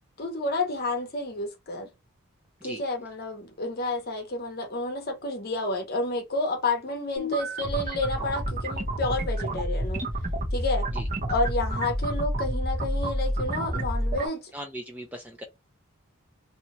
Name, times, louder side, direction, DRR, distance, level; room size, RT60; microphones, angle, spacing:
voice 1, 0.2-1.9 2.6-10.1 10.5-10.9 11.3-14.5, left 2 dB, 45° left, 0.8 m, -30 dB
sound 1, 7.2-14.3, right 1 dB, 35° right, 0.7 m, -29 dB
voice 2, 14.5-15.4, equal, 5° right, 0.4 m, -39 dB
2.7 x 2.4 x 2.9 m
head